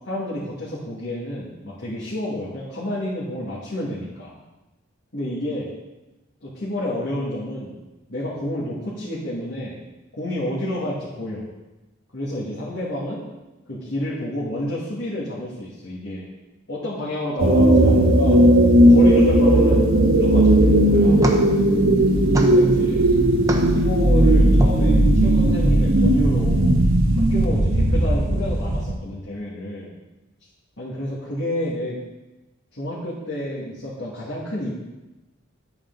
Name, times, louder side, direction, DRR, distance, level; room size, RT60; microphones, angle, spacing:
voice 1, 0.0-4.3 5.1-5.7 6.4-7.7 8.1-9.8 10.1-11.4 12.1-13.2 13.7-16.3 16.7-18.4 18.9-21.2 22.3-23.0 23.5-26.7 27.1-29.9 30.8-32.0 32.7-34.7, left 1 dB, 60° left, -8 dB, 2.3 m, -30 dB
sound 1, 17.4-28.9, right 1 dB, 85° right, 1.2 m, -16 dB
sound 2, 20.3-25.3, right 1 dB, 15° right, 0.9 m, -30 dB
11.5 x 8.6 x 4.0 m, 1.1 s
head